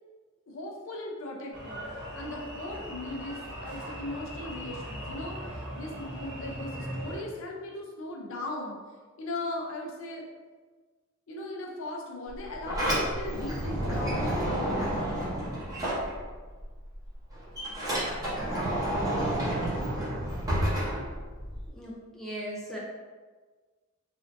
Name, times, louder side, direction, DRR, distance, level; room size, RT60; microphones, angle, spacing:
voice 1, 0.5-8.8 9.2-10.3 11.3-15.2, left 1 dB, 65° left, -1 dB, 0.5 m, -38 dB
sound 1, 1.5-7.2, equal, 60° right, 1.2 m, -39 dB
Sliding door, 12.3-16.6 16.9-21.7, right 1 dB, 15° right, 0.9 m, -30 dB
voice 2, 21.7-22.8, equal, ahead, -6 dB, 0.5 m, -38 dB
3.3 x 2.6 x 2.5 m, 1.4 s
head